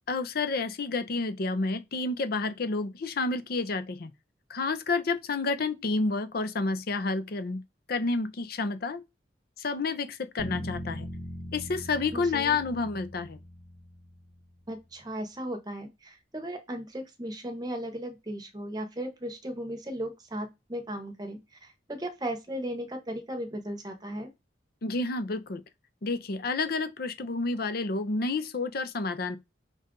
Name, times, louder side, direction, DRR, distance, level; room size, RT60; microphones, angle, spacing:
voice 1, 0.1-4.1 4.5-7.6 7.9-9.0 9.6-11.1 11.5-13.4 24.8-25.6 26.0-29.4, left 3 dB, 55° left, 0.6 m, -30 dB
sound 1, 10.4-14.5, left 1 dB, 30° left, 1.0 m, -40 dB
voice 2, 12.1-12.6 14.7-24.3, right 1 dB, 20° right, 0.9 m, -36 dB
5.4 x 2.5 x 3.6 m
head